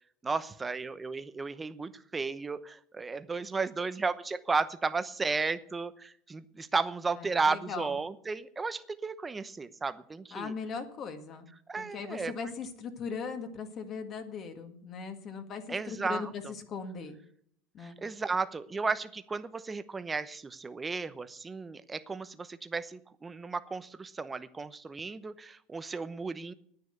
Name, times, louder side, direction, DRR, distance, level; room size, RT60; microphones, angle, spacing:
voice 1, 0.2-10.5 11.7-12.5 15.7-16.3 17.8-26.5, right 4 dB, 15° right, 13 dB, 0.9 m, -34 dB
voice 2, 7.2-8.0 10.3-11.5 11.8-17.2 17.7-18.0, left 5 dB, 40° left, 6 dB, 1.9 m, -39 dB
9.8 x 9.7 x 7.9 m, 0.66 s
supercardioid pair, 120°, 0 cm